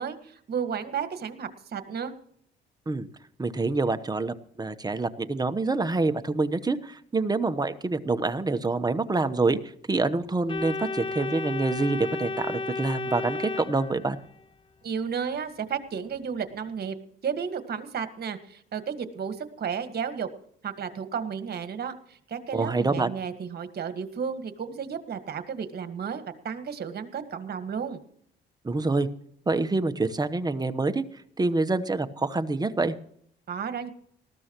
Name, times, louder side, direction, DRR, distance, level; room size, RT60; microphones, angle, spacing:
voice 1, 0.0-2.1 14.8-16.9 17.2-20.3 20.6-28.0 33.5-33.9, right 7 dB, 55° right, 9 dB, 1.7 m, -33 dB
voice 2, 3.4-14.2 22.5-23.1 28.6-29.1 29.5-33.0, right 3 dB, 20° right, 9 dB, 1.1 m, -26 dB
Organ, 10.5-14.4, left 3 dB, 25° left, 0.9 m, -33 dB
19.5 x 14.0 x 3.0 m, 0.66 s
cardioid pair, 90°, 20 cm